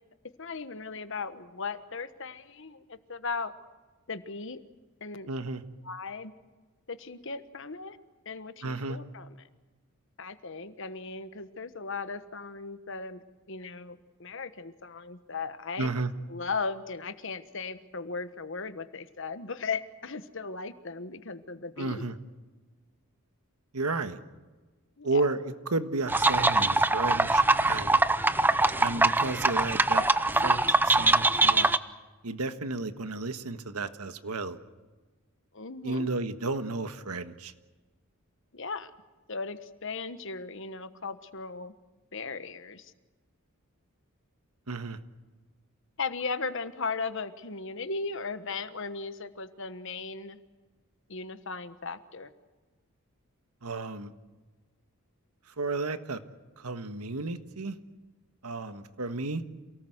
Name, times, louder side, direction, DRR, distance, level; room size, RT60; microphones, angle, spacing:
voice 1, 0.4-3.5 4.1-4.6 5.0-5.3 5.8-6.3 6.9-8.0 8.2-9.5 10.2-13.2 13.5-15.9 16.3-22.1 25.0-25.3 35.5-36.1 38.5-38.9 39.3-41.7 42.1-42.9 46.0-50.4 51.1-52.3, left 4 dB, 55° left, 12 dB, 1.3 m, -37 dB
voice 2, 5.3-5.6 8.6-9.0 15.8-16.1 21.8-22.1 23.7-24.2 25.0-28.0 28.8-30.0 30.4-31.7 32.2-34.6 35.8-37.5 44.7-45.0 53.6-54.1 55.5-56.2 56.6-57.7 58.4-59.4, right 3 dB, 90° right, 10 dB, 1.5 m, -32 dB
sound 1, 26.1-31.8, right 2 dB, 10° right, 0.7 m, -23 dB
28.0 x 18.5 x 8.0 m, 1.3 s
head